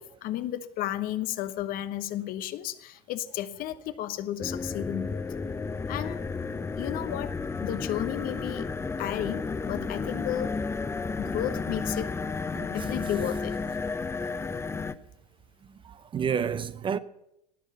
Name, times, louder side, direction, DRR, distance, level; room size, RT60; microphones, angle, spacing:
voice 1, 0.0-5.2 5.9-6.2 6.8-8.7 9.0-10.6 11.2-12.1 12.7-13.5, left 12 dB, 45° left, 0.9 m, -33 dB
sound 1, 4.4-14.9, left 4 dB, 10° left, 0.6 m, -32 dB
voice 2, 12.5-12.9 15.8-17.0, right 7 dB, 25° right, 0.6 m, -30 dB
18.5 x 6.5 x 8.0 m
hypercardioid pair, 80°, 21 cm